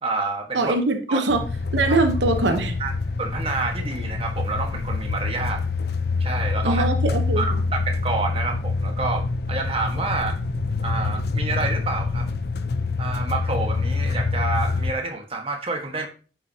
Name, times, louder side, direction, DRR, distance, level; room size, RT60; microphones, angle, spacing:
voice 1, 0.0-0.7 1.1-1.2 1.9-2.0 2.8-2.9 3.2-5.6 6.2-6.8 7.3-7.5 7.7-10.4 10.8-12.3 13.0-16.1, right 3 dB, 30° right, 2 dB, 1.4 m, -28 dB
voice 2, 0.5-1.4 1.7-2.8 6.6-7.4, right 2 dB, 90° right, 6 dB, 1.0 m, -22 dB
sound 1, 1.3-14.9, left 3 dB, 60° left, 0.6 m, -26 dB
10.0 x 6.1 x 2.8 m, 0.37 s
head